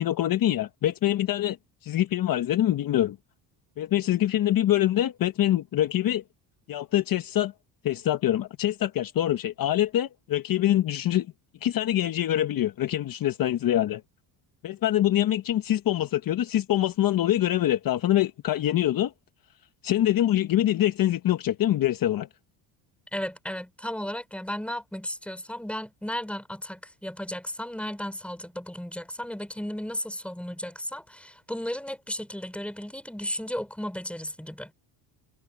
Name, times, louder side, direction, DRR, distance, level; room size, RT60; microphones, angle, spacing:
voice 1, 0.0-1.6 1.8-3.2 3.8-6.2 6.7-7.5 7.8-11.3 11.6-14.0 14.6-19.1 19.8-22.3, left 12 dB, 50° left, 1.2 m, -24 dB
voice 2, 23.1-34.7, equal, 5° left, 5.6 m, -34 dB
cardioid pair, 110°, 44 cm